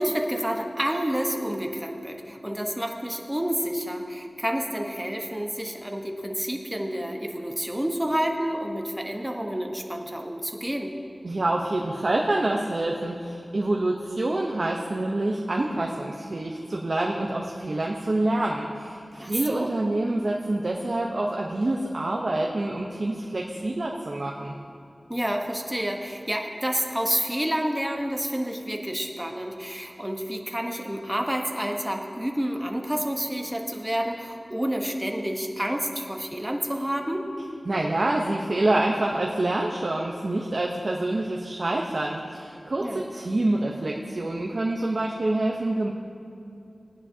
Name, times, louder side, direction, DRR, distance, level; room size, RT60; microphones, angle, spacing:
voice 1, 0.0-10.9 19.2-19.7 25.1-37.3 42.8-43.0, equal, 10° right, 2 dB, 1.2 m, -29 dB
voice 2, 11.2-24.5 37.7-45.9, right 2 dB, 60° right, -1 dB, 0.9 m, -26 dB
19.0 x 9.9 x 2.8 m, 2.5 s
wide cardioid pair, 50°, 0 cm